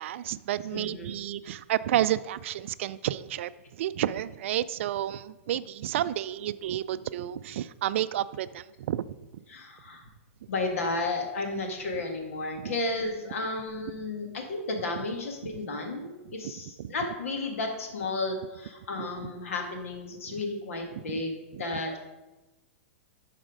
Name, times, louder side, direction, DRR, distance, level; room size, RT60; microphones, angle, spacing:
voice 1, 0.0-9.1 9.3-9.4 12.6-12.7 16.2-16.5 16.8-16.9 19.0-19.1 20.3-20.4 20.9-21.2 21.5-21.6, right 12 dB, 65° right, 13 dB, 0.3 m, -31 dB
voice 2, 0.7-1.2 9.5-10.0 10.5-22.0, left 2 dB, 80° left, 3 dB, 1.9 m, -33 dB
11.5 x 4.2 x 5.1 m, 1.1 s
hypercardioid pair, 145°, 7 cm